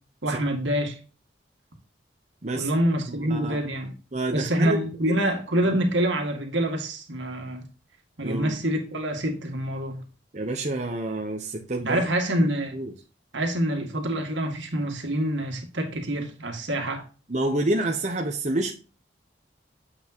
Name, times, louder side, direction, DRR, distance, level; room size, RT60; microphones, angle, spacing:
voice 1, 0.2-1.0 2.5-3.9 4.3-7.7 8.2-10.0 11.8-12.8 13.3-17.0, right 1 dB, 75° right, 2.0 m, -26 dB
voice 2, 3.1-3.6 4.1-4.8 5.1-5.3 5.7-5.8 8.2-8.6 10.3-12.0 12.7-12.9 17.3-18.7, right 2 dB, 40° right, 0.9 m, -28 dB
8.0 x 6.0 x 2.9 m
head